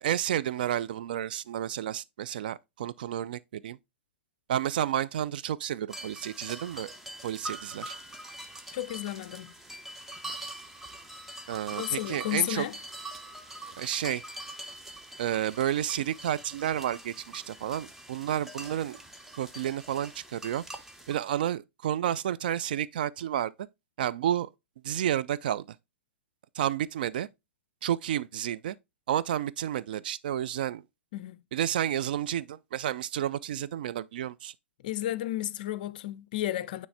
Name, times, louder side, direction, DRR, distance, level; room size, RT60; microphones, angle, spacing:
voice 1, 0.0-3.8 4.5-6.9 7.2-7.9 11.5-12.7 13.8-14.2 15.2-19.0 19.4-20.6 21.1-23.5 24.0-24.5 24.8-25.7 26.5-27.3 27.8-28.8 29.1-30.8 31.5-34.5, right 11 dB, 50° right, 0.4 m, -31 dB
sound 1, 5.9-21.1, right 1 dB, 5° right, 0.6 m, -44 dB
voice 2, 8.7-9.5 11.7-12.7 31.1-31.4 34.8-36.9, left 14 dB, 45° left, 0.4 m, -32 dB
9.4 x 3.2 x 3.4 m
figure-of-eight pair, 110°, 6 cm